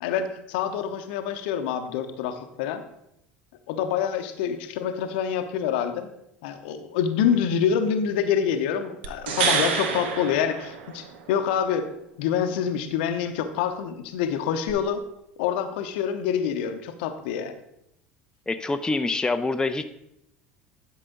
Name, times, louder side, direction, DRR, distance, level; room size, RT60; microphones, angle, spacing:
voice 1, 0.0-2.8 3.7-6.1 6.4-11.9 12.2-15.0 15.4-17.5, left 8 dB, 65° left, 9 dB, 0.8 m, -26 dB
sound 1, 9.0-11.3 14.7-14.8, right 6 dB, 70° right, 0.9 m, -27 dB
voice 2, 18.5-19.8, left 3 dB, 10° left, 9 dB, 0.5 m, -25 dB
11.0 x 5.6 x 3.8 m, 0.80 s
figure-of-eight pair, 70°, 6 cm